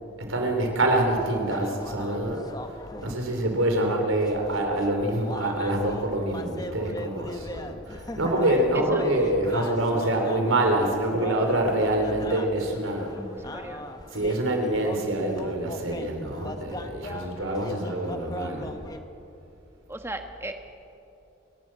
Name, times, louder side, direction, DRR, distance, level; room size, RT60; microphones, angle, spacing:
voice 1, 0.3-2.4 3.0-13.1 14.1-18.7, right 1 dB, 85° right, 3 dB, 3.8 m, -26 dB
sound 1, 1.2-3.1 4.2-19.0, left 1 dB, 20° left, 0.9 m, -39 dB
voice 2, 8.7-9.0 13.2-13.8 19.9-20.7, right 1 dB, 10° right, 6 dB, 1.2 m, -37 dB
28.5 x 12.5 x 7.7 m, 2.9 s
head